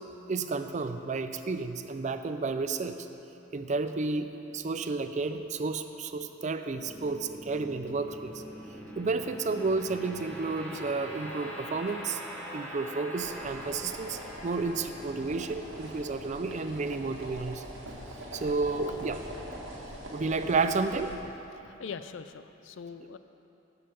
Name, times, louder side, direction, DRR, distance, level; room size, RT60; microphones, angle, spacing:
voice 1, 0.3-3.0 3.5-8.3 9.0-12.2 12.5-17.6 18.3-19.2 20.1-21.1, right 3 dB, 35° right, 9 dB, 0.4 m, -31 dB
sound 1, 6.7-17.9, equal, 5° left, 1.1 m, -44 dB
sound 2, 13.2-21.2, right 1 dB, 80° right, 1.7 m, -43 dB
voice 2, 21.6-23.2, left 6 dB, 70° left, 11 dB, 0.4 m, -42 dB
11.0 x 5.5 x 6.8 m, 2.9 s
head